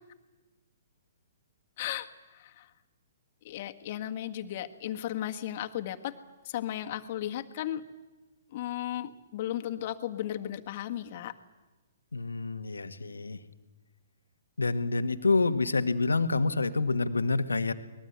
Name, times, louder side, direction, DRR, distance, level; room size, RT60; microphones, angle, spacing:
voice 1, 1.8-2.1 2.3-2.7 3.4-6.1 6.4-7.8 8.5-11.3, left 12 dB, 50° left, 6 dB, 1.7 m, -35 dB
voice 2, 12.1-13.4 14.6-17.7, left 3 dB, 85° left, 9 dB, 1.5 m, -27 dB
23.5 x 20.5 x 8.1 m, 1.1 s
hypercardioid pair, 125°, 0 cm